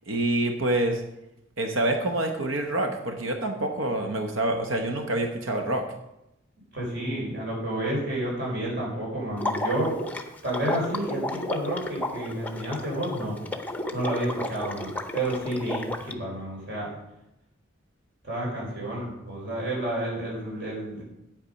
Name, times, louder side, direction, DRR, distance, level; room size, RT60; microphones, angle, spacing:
voice 1, 0.1-1.0 1.6-5.9, right 1 dB, 75° right, 4 dB, 1.0 m, -26 dB
voice 2, 6.7-10.0 10.4-13.3 13.9-16.9 18.2-21.0, right 1 dB, 55° right, -3 dB, 4.6 m, -30 dB
Water / Liquid, 9.4-16.1, left 2 dB, 10° left, 0.6 m, -33 dB
8.9 x 8.5 x 5.3 m, 0.86 s
head